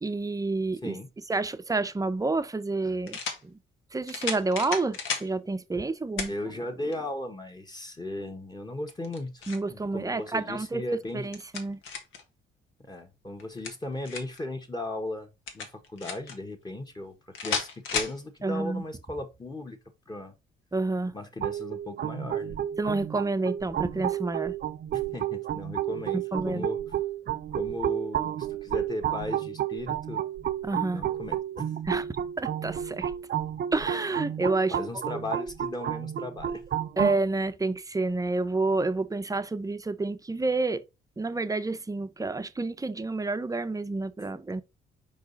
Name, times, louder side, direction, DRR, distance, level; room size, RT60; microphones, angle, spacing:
voice 1, 0.0-1.0 1.3-3.6 3.9-6.3 9.5-10.8 11.1-11.8 18.4-18.8 20.7-21.1 22.8-24.6 26.1-26.7 30.6-31.0 31.9-32.0 32.4-33.1 33.7-34.8 37.0-40.8 41.2-44.6, right 3 dB, 15° right, 0.6 m, -29 dB
sound 1, 1.8-1.9 3.1-3.4 4.1-5.3 6.2-6.4 6.9-7.0 8.9-9.7 11.0-12.2 13.4-14.4 15.5-16.4 17.3-18.2, left 5 dB, 85° left, 1.6 m, -33 dB
voice 2, 6.3-11.2 12.9-19.8 20.1-20.3 21.1-22.6 24.9-26.8 27.5-30.2 30.9-31.7 34.3-34.4 34.7-36.6, left 1 dB, 20° left, 1.4 m, -37 dB
sound 2, 21.4-37.2, right 11 dB, 55° right, 0.6 m, -31 dB
4.9 x 4.9 x 4.0 m
cardioid pair, 90°, 20 cm